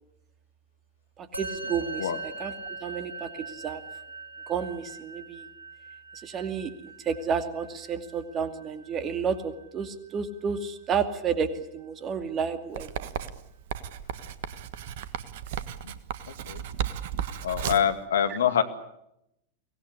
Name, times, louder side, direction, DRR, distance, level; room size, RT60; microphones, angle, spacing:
Musical instrument, 1.3-10.9, right 3 dB, 85° right, 3.2 m, -42 dB
voice 1, 1.4-2.5 2.8-3.8 4.5-5.4 6.2-12.9, right 6 dB, 30° right, 10 dB, 2.5 m, -31 dB
Writing, 12.8-18.0, right 10 dB, 55° right, 1.4 m, -35 dB
voice 2, 17.4-18.6, left 9 dB, 65° left, 10 dB, 2.1 m, -24 dB
24.0 x 18.5 x 10.0 m, 0.83 s
figure-of-eight pair, 90°, 0 cm